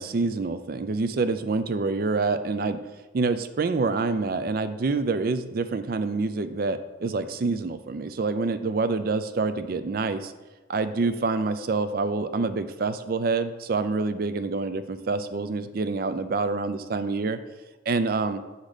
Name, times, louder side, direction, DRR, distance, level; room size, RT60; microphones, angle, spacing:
voice 1, 0.0-2.8 3.1-10.3 10.7-17.4 17.9-18.4, right 3 dB, 50° right, 11 dB, 0.4 m, -27 dB
7.2 x 4.1 x 5.0 m, 1.2 s
head